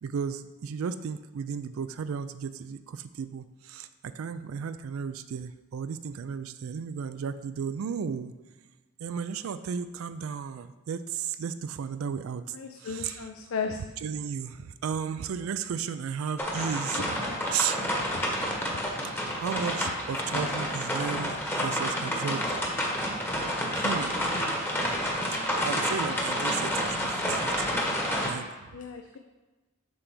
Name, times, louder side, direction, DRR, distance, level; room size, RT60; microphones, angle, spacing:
voice 1, 0.0-8.3 9.0-13.3 14.0-17.0 17.5-17.8 19.4-22.4 23.7-24.2 25.3-27.8 28.2-28.5, right 7 dB, 85° right, 12 dB, 0.4 m, -34 dB
voice 2, 12.5-13.8 17.0-17.1 17.8-18.1 28.7-29.2, left 5 dB, 80° left, 4 dB, 0.5 m, -35 dB
sound 1, 16.4-28.3, equal, 10° left, 1.0 m, -29 dB
7.6 x 3.4 x 6.0 m, 1.2 s
head